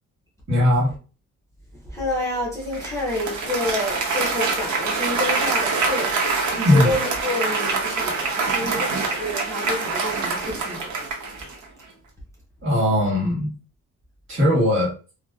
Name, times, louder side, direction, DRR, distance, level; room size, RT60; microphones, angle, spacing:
voice 1, 0.5-0.9 6.6-6.9 12.6-13.5 14.3-14.9, left 1 dB, 45° right, 1.4 m, -19 dB
voice 2, 1.8-6.2 6.5-10.9, left 1 dB, 10° left, 0.6 m, -29 dB
Applause, 2.7-11.6, right 4 dB, 75° right, 0.7 m, -25 dB
2.6 x 2.0 x 2.3 m
cardioid pair, 130°, 30 cm